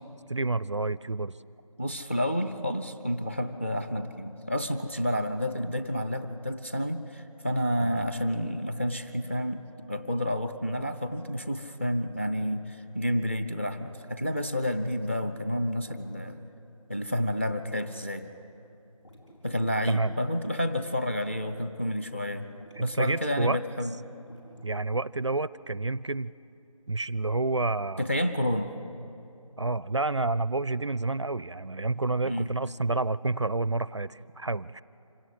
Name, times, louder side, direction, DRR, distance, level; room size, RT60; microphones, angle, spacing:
voice 1, 0.3-1.4 7.8-8.0 19.9-20.1 22.8-23.6 24.6-26.3 26.9-28.1 29.6-34.8, right 3 dB, 55° right, 19 dB, 0.4 m, -29 dB
voice 2, 1.8-9.6 9.9-16.4 16.9-18.3 19.4-22.5 22.8-23.9 28.0-28.8 32.2-32.5, equal, 20° left, 10 dB, 0.7 m, -30 dB
sound 1, 13.9-16.7 17.0-17.3 17.6-18.2 18.5-19.7 20.0-20.3 20.7-20.8 21.2-21.7 22.4-22.9 23.5-23.7 24.1-25.3, left 1 dB, 55° left, 4.5 m, -54 dB
25.5 x 17.0 x 7.9 m, 2.7 s
figure-of-eight pair, 170°, 18 cm